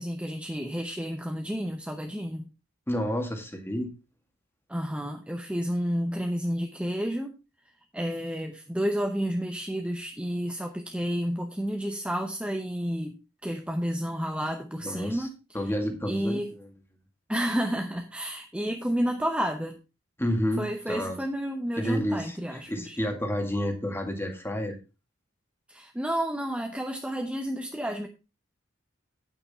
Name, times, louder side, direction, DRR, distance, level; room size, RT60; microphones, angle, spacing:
voice 1, 0.0-2.4 4.7-7.4 7.9-13.2 13.4-15.3 16.1-16.5 17.3-19.8 20.6-23.0 25.7-28.1, equal, 5° right, 4 dB, 0.8 m, -30 dB
voice 2, 2.9-3.9 14.8-15.3 15.5-16.7 20.2-21.2 21.8-24.8, equal, 10° left, 5 dB, 1.9 m, -30 dB
8.8 x 8.8 x 4.2 m, 0.29 s
head